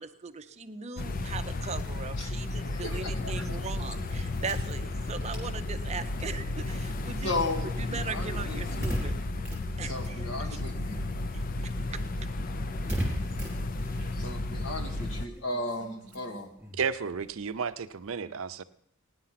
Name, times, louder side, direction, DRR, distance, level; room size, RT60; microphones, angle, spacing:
voice 1, 0.0-7.3 7.9-9.1 9.8-10.2 11.6-12.0, right 5 dB, 30° right, 8 dB, 0.6 m, -39 dB
sound 1, 1.0-15.3, left 2 dB, 40° left, 0.5 m, -33 dB
sound 2, 1.0-10.9 11.2-18.1, equal, 5° right, 3.9 m, -41 dB
voice 2, 2.6-3.6 7.2-8.8 9.8-11.0 14.2-16.5, left 2 dB, 60° left, 3 dB, 2.1 m, -35 dB
voice 3, 16.8-18.6, right 6 dB, 75° right, 12 dB, 0.6 m, -32 dB
17.0 x 10.0 x 5.8 m, 0.74 s
head